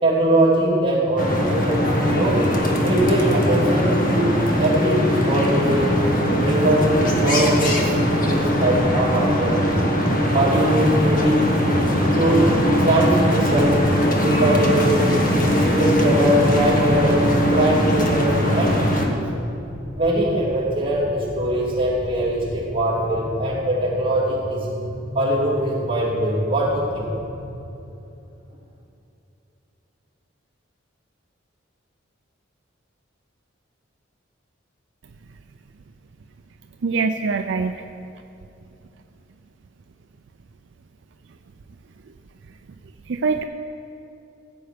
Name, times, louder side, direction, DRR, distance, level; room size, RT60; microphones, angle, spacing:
voice 1, 0.0-2.4 2.8-4.3 4.6-6.0 6.4-7.9 8.2-9.8 10.3-11.4 11.9-12.5 12.8-13.8 14.2-15.1 15.5-18.8 19.9-24.7 25.1-27.1, right 1 dB, 25° right, -7 dB, 2.8 m, -21 dB
sound 1, 1.2-19.1, equal, 45° left, 1.3 m, -20 dB
sound 2, 15.9-27.6, equal, 15° left, 1.3 m, -34 dB
voice 2, 36.8-37.8 43.1-43.4, right 4 dB, 65° right, 6 dB, 0.4 m, -23 dB
15.5 x 8.0 x 5.1 m, 2.8 s
head